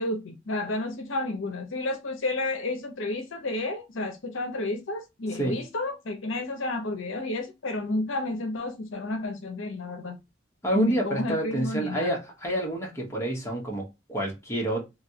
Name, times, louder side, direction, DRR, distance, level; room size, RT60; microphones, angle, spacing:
voice 1, 0.0-10.2 10.7-12.1, left 2 dB, 70° left, 0.7 m, -31 dB
voice 2, 10.6-14.9, right 1 dB, 15° left, 1.0 m, -28 dB
3.0 x 2.7 x 2.7 m
head